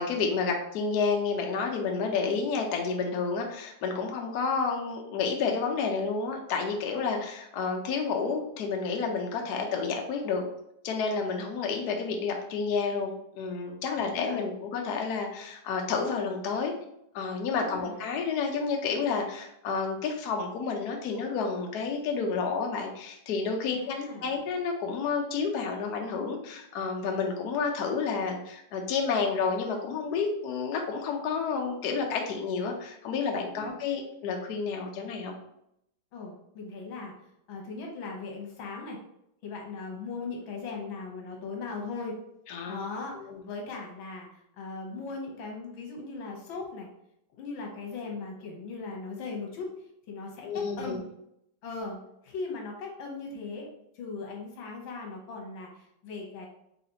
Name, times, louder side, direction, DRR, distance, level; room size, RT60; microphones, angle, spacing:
voice 1, 0.0-10.4 10.8-16.7 17.1-35.3 42.5-42.8 43.1-43.4 50.4-51.0, left 5 dB, 65° left, 2 dB, 1.1 m, -30 dB
voice 2, 13.9-14.4 17.6-18.0 23.7-24.3 33.5-33.7 36.1-37.1 37.5-39.0 39.4-42.2 42.7-46.9 47.3-49.7 50.1-51.0 51.6-53.7 53.9-56.5, left 4 dB, 85° left, 0 dB, 1.8 m, -39 dB
4.1 x 3.9 x 2.8 m, 0.77 s
omnidirectional pair, 2.1 m